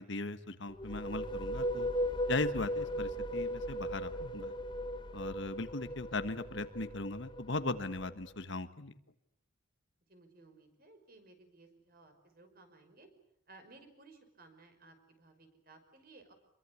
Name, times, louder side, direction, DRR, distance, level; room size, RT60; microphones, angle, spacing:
voice 1, 0.0-1.9 2.3-4.5 5.1-9.0, left 2 dB, 60° left, 11 dB, 1.4 m, -38 dB
sound 1, 0.7-8.3, equal, 20° left, 1.1 m, -37 dB
voice 2, 10.1-13.1 13.5-16.3, right 3 dB, 45° right, 6 dB, 5.8 m, -59 dB
27.0 x 23.0 x 8.6 m, 0.69 s
head